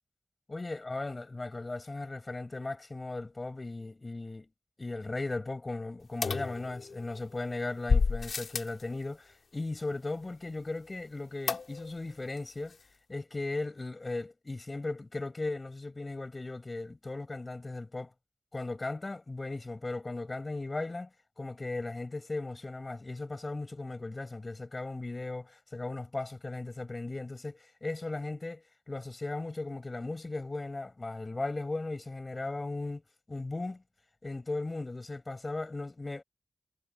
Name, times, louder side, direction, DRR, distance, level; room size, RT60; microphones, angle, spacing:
voice 1, 0.5-4.5 4.8-12.8 13.1-18.1 18.5-21.1 21.4-33.0 33.3-33.8 34.2-36.2, left 2 dB, 50° left, 5.2 m, -37 dB
sound 1, 6.2-7.2 7.9-8.8 11.5-12.1 12.4-12.5 12.7-12.8, left 4 dB, 90° left, 2.6 m, -30 dB
cardioid pair, 40°, 0 cm